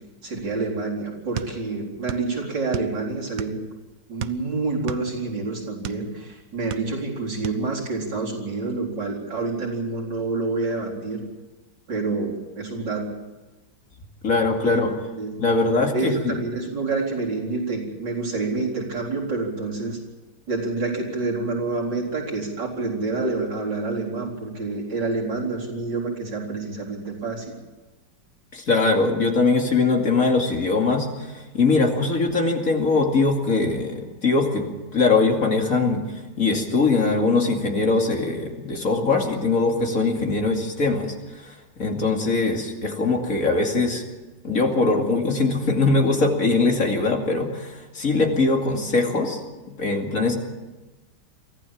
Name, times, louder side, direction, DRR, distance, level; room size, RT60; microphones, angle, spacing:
voice 1, 0.2-3.6 4.1-11.2 11.9-13.1 14.6-14.9 15.2-20.0 20.5-27.5, right 3 dB, 80° right, -3 dB, 4.9 m, -28 dB
sound 1, 1.4-2.3 2.6-3.7 4.2-6.1 6.5-7.1 7.4-7.6, right 10 dB, 60° right, 1.1 m, -33 dB
voice 2, 14.2-15.0 15.4-16.4 28.5-36.0 36.4-41.1 41.4-44.0 44.4-49.4 49.7-50.4, left 3 dB, 50° left, 2 dB, 2.8 m, -21 dB
24.0 x 15.0 x 7.4 m, 1.1 s
omnidirectional pair, 1.9 m